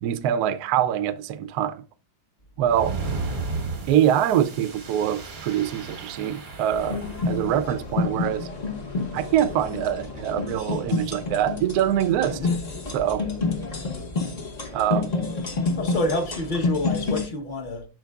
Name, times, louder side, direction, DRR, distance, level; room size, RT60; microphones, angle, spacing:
voice 1, 0.0-1.8 2.6-3.0 3.9-8.5 9.1-12.4 12.9-13.3 14.7-15.1, right 10 dB, 90° right, 0.8 m, -24 dB
sound 1, 2.7-7.6, right 3 dB, 50° right, 0.5 m, -34 dB
sound 2, 6.7-17.3, left 3 dB, 85° left, 0.3 m, -29 dB
voice 2, 15.8-17.9, left 2 dB, 45° left, 0.6 m, -28 dB
12.5 x 4.6 x 2.3 m
omnidirectional pair, 2.4 m